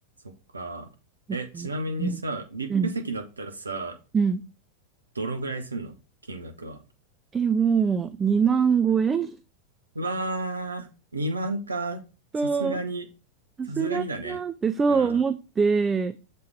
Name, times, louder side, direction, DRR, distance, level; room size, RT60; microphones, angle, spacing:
voice 1, 0.5-0.9 1.3-4.0 5.1-5.9 6.3-6.8 9.9-10.9 11.1-12.0 12.4-13.0 13.7-14.4 14.9-15.2, right 2 dB, 80° right, 6 dB, 0.8 m, -32 dB
voice 2, 4.1-4.4 7.3-9.4 12.3-12.8 13.6-16.1, right 6 dB, 15° right, 12 dB, 0.3 m, -24 dB
6.8 x 4.3 x 3.4 m, 0.31 s
figure-of-eight pair, 90°, 0 cm